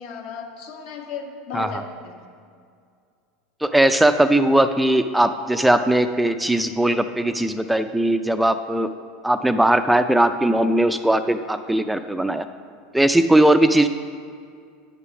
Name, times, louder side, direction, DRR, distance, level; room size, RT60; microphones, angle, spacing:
voice 1, 0.0-2.3 9.3-9.4 13.3-13.6, left 6 dB, 65° left, 2 dB, 1.5 m, -35 dB
voice 2, 3.6-8.9 9.2-12.5 12.9-13.9, right 1 dB, 5° right, 9 dB, 0.4 m, -19 dB
8.7 x 6.8 x 6.0 m, 2.3 s
hypercardioid pair, 90°, 0 cm